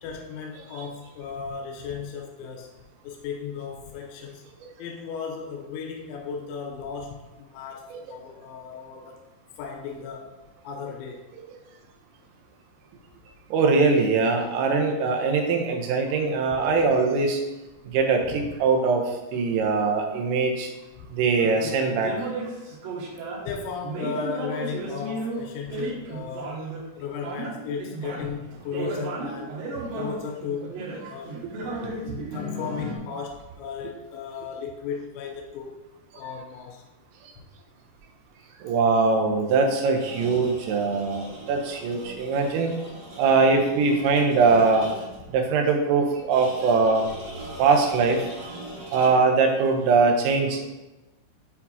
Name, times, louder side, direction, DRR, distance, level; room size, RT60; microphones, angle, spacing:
voice 1, 0.0-4.5 4.8-9.2 9.6-10.4 10.6-11.2 18.3-18.5 23.3-26.6 27.0-29.6 29.9-30.7 31.1-31.5 32.0-35.8 36.1-36.8, left 6 dB, 85° left, 1 dB, 3.2 m, -35 dB
voice 2, 13.5-17.4 17.9-19.0 19.3-20.7 21.1-22.1 31.8-31.9 38.6-42.7 43.2-44.9 45.3-47.1 47.6-48.2 48.9-50.7, right 4 dB, 90° right, 2 dB, 3.5 m, -22 dB
sound 1, 21.3-23.4 23.8-26.9 27.1-33.0, right 2 dB, 70° right, 3.1 m, -34 dB
sound 2, 40.0-45.3 46.3-49.4, right 1 dB, 45° right, 1.1 m, -41 dB
9.6 x 4.5 x 2.8 m, 1.0 s
omnidirectional pair, 5.7 m